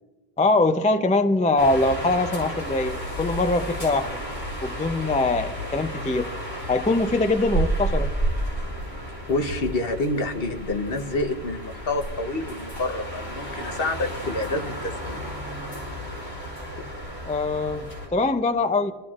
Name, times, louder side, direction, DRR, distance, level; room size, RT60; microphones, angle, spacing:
voice 1, 0.4-4.2 4.6-6.3 6.7-8.1 17.2-17.8 18.1-18.9, left 2 dB, 10° left, 8 dB, 0.4 m, -22 dB
sound 1, 1.6-18.1, right 1 dB, 85° left, 5.9 m, -32 dB
voice 2, 9.3-15.3, left 2 dB, 65° left, 5 dB, 1.2 m, -28 dB
27.5 x 13.0 x 2.4 m, 1.2 s
omnidirectional pair, 1.1 m